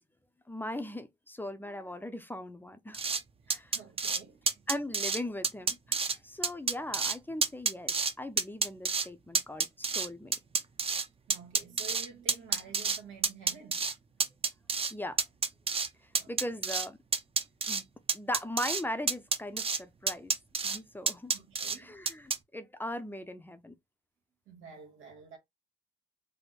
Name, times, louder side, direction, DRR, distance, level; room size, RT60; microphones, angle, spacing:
voice 1, 0.5-3.0 3.5-3.8 4.7-10.3 14.9-15.2 16.0-17.0 17.7-17.9 18.1-20.3 20.6-21.4 21.8-23.7, left 1 dB, 10° left, 0.5 m, -39 dB
sound 1, 2.9-3.2 3.5-4.2 4.5-5.2 5.4-6.2 6.4-7.2 7.4-8.1 8.4-9.1 9.3-11.1 11.3-13.0 13.2-13.9 14.2-14.9 15.2-15.9 16.2-16.9 17.1-17.8 18.1-18.8 19.1-19.8 20.1-20.8 21.1-21.8 22.1-22.4, right 5 dB, 30° right, 0.6 m, -29 dB
voice 2, 3.4-4.6 11.3-13.8 16.2-16.3 21.3-22.0 24.5-25.4, right 5 dB, 90° right, 1.5 m, -50 dB
3.5 x 2.1 x 4.0 m
cardioid pair, 90°, 20 cm